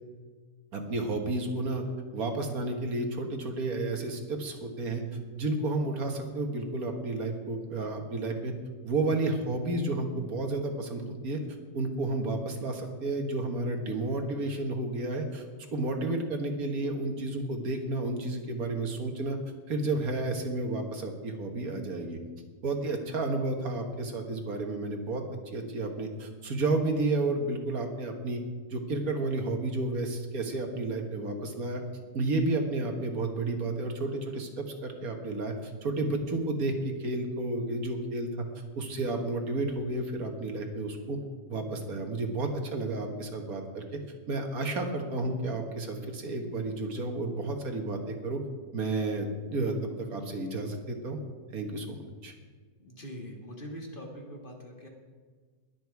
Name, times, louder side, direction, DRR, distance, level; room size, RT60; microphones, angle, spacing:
voice 1, 0.7-1.8 2.1-5.0 5.3-8.5 8.8-11.4 11.7-15.4 15.7-19.4 19.7-22.2 22.6-28.4 28.7-31.8 32.1-36.7 37.0-38.3 38.8-41.2 41.5-43.8 44.3-48.4 48.7-51.2 51.5-52.3, right 2 dB, 70° right, 4 dB, 1.9 m, -31 dB
voice 2, 52.8-54.9, equal, 35° left, 0 dB, 2.0 m, -43 dB
21.0 x 7.5 x 4.7 m, 1.5 s
omnidirectional pair, 1.6 m